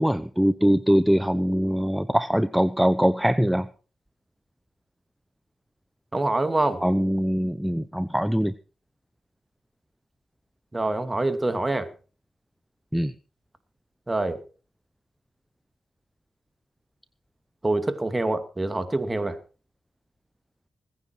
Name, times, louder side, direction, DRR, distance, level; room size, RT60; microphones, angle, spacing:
voice 1, 0.0-3.6 6.8-8.5 12.9-13.1, equal, 5° right, 14 dB, 0.7 m, -22 dB
voice 2, 6.1-6.8 10.7-11.9 14.1-14.4 17.6-19.4, right 2 dB, 25° right, 10 dB, 2.4 m, -25 dB
20.5 x 9.5 x 4.6 m, 0.37 s
supercardioid pair, 50°, 0 cm